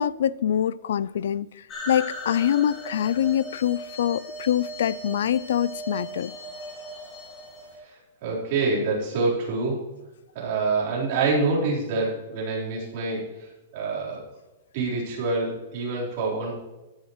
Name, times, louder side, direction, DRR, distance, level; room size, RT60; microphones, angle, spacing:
voice 1, 0.0-1.5 1.9-6.3, left 10 dB, 70° left, 0.4 m, -24 dB
sound 1, 1.7-7.8, equal, 15° left, 2.3 m, -38 dB
voice 2, 8.2-9.8 10.3-13.5 13.7-14.2 14.7-16.5, right 3 dB, 40° right, 4.0 m, -26 dB
14.5 x 10.5 x 3.1 m
supercardioid pair, 175°, 0 cm